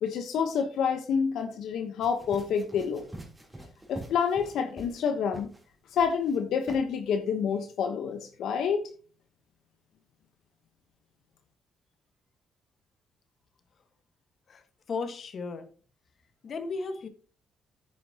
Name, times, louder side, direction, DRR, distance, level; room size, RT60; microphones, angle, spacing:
voice 1, 0.0-3.0 3.9-5.5 5.9-8.8, left 6 dB, 75° left, 5 dB, 1.1 m, -28 dB
sound 1, 2.0-5.0 5.3-5.6 6.0-6.4 6.7-6.8, right 1 dB, 15° right, 3.6 m, -45 dB
voice 2, 14.9-15.7 16.4-17.1, left 4 dB, 50° left, 8 dB, 1.6 m, -34 dB
10.5 x 9.3 x 3.0 m, 0.39 s
cardioid pair, 90°, 0 cm